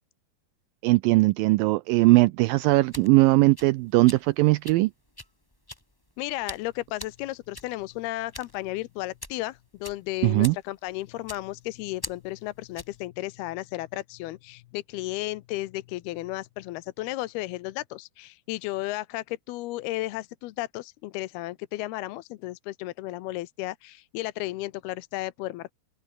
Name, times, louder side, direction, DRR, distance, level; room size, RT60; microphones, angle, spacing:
voice 1, 0.8-4.9 10.2-10.6, right 21 dB, 90° right, 2.0 m, -20 dB
sound 1, 2.6-13.1, left 1 dB, 5° left, 1.8 m, -45 dB
voice 2, 6.2-25.7, left 17 dB, 80° left, 2.7 m, -34 dB
open air
omnidirectional pair, 4.6 m